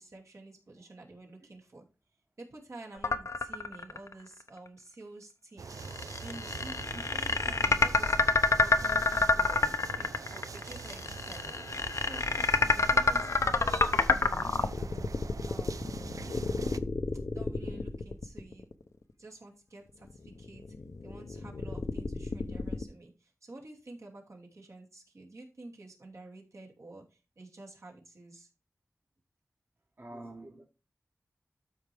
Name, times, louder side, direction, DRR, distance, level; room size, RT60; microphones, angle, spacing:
voice 1, 0.0-1.8 2.4-5.7 6.2-8.1 8.6-11.6 12.0-14.9 15.4-15.8 16.3-16.8 17.3-18.7 19.2-20.6 21.0-28.5, right 2 dB, 60° right, 2.7 m, -49 dB
sound 1, 3.0-4.1 4.5-4.6 5.8-18.8 20.0-22.8, left 3 dB, 65° left, 0.7 m, -29 dB
sound 2, 5.6-16.8, right 5 dB, 85° right, 0.5 m, -44 dB
voice 2, 30.0-30.6, right 1 dB, 40° right, 1.8 m, -46 dB
12.5 x 4.6 x 3.5 m
wide cardioid pair, 80°, 6 cm